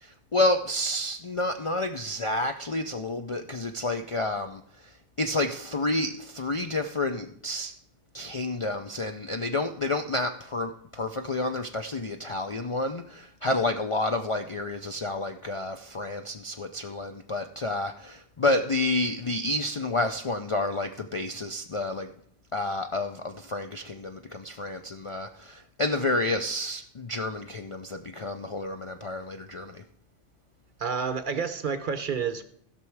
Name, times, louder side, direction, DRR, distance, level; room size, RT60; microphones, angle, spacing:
voice 1, 0.0-7.7 8.1-22.1 22.5-29.8, left 2 dB, 45° left, 6 dB, 0.4 m, -30 dB
voice 2, 30.8-32.4, right 6 dB, 50° right, 10 dB, 0.8 m, -29 dB
15.5 x 6.1 x 4.7 m, 0.64 s
omnidirectional pair, 1.2 m